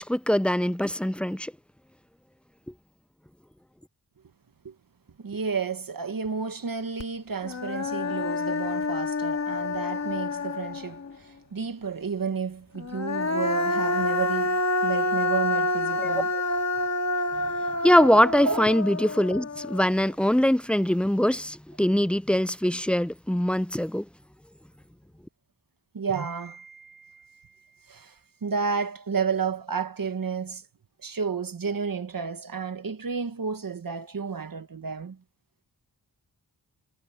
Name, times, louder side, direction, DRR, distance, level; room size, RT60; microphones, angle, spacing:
voice 1, 0.0-1.5 16.0-16.2 17.8-24.0, equal, 5° left, 0.4 m, -23 dB
voice 2, 5.2-16.4 18.4-18.6 25.9-27.4 27.9-28.1 28.4-30.6 31.0-35.2, right 5 dB, 55° right, 1.7 m, -31 dB
Human voice, 7.0-7.1 7.4-11.1 12.8-20.0, left 2 dB, 40° left, 2.0 m, -28 dB
wide cardioid pair, 75°, 40 cm